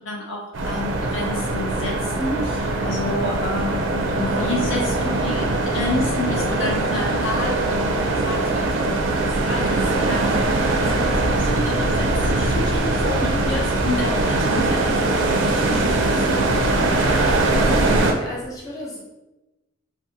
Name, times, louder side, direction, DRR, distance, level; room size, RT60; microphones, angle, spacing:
voice 1, 0.1-7.9 8.2-16.6, left 2 dB, 70° left, -1 dB, 0.5 m, -30 dB
sound 1, 0.5-18.1, right 2 dB, 70° right, 0.4 m, -21 dB
voice 2, 17.4-19.0, left 1 dB, 20° left, -6 dB, 0.6 m, -36 dB
2.6 x 2.2 x 2.6 m, 1.0 s
head